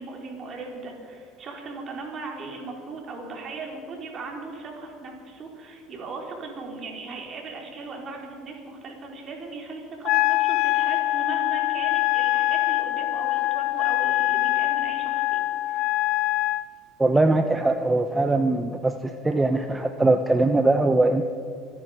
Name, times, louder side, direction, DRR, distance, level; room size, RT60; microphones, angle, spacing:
voice 1, 0.0-15.8, right 3 dB, 45° right, 0 dB, 4.1 m, -38 dB
Wind instrument woodwind instrument, 10.0-16.6, left 17 dB, 60° left, 0.5 m, -23 dB
voice 2, 17.0-18.9 19.2-21.2, right 2 dB, 15° right, 7 dB, 0.8 m, -21 dB
25.0 x 10.0 x 5.1 m, 2.2 s
hypercardioid pair, 85°, 0 cm